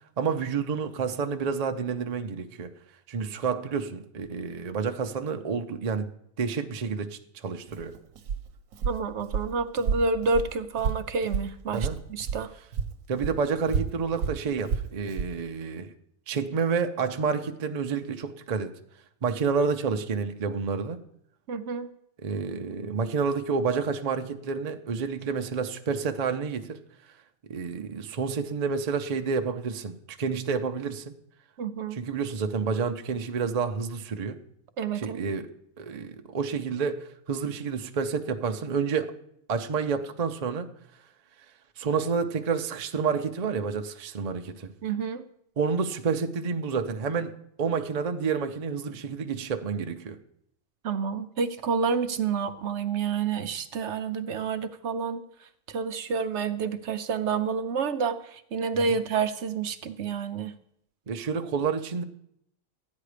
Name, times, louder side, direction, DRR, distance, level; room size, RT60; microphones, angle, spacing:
voice 1, 0.2-2.7 3.1-6.1 6.4-7.9 11.7-12.0 13.1-15.9 16.3-18.7 19.2-21.0 22.2-26.8 27.5-31.1 31.9-34.4 34.9-35.5 35.8-39.1 39.5-40.7 41.8-44.7 45.6-47.3 47.6-50.2 58.9-59.0 61.1-62.0, right 5 dB, 40° right, 6 dB, 0.6 m, -29 dB
Walk footsteps, 7.7-12.5 12.7-15.4, right 6 dB, 85° right, 1.2 m, -31 dB
voice 2, 8.8-12.5 21.5-21.9 31.6-32.0 34.8-35.2 44.8-45.2 50.8-55.2 55.7-60.5, right 5 dB, 65° right, 10 dB, 0.9 m, -29 dB
13.5 x 9.5 x 5.0 m, 0.74 s
omnidirectional pair, 1.4 m